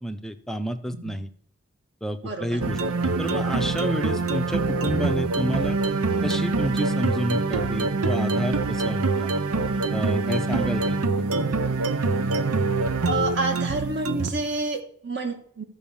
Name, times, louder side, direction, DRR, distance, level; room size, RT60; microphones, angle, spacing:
voice 1, 0.0-1.3 2.0-2.8 3.0-5.8 6.2-9.3 9.9-11.2, equal, ahead, 7 dB, 0.5 m, -30 dB
voice 2, 2.2-2.6 13.0-15.6, right 2 dB, 55° right, 6 dB, 1.5 m, -29 dB
sound 1, 2.6-14.5, right 3 dB, 90° right, 0.7 m, -25 dB
13.0 x 4.9 x 7.0 m, 0.63 s
head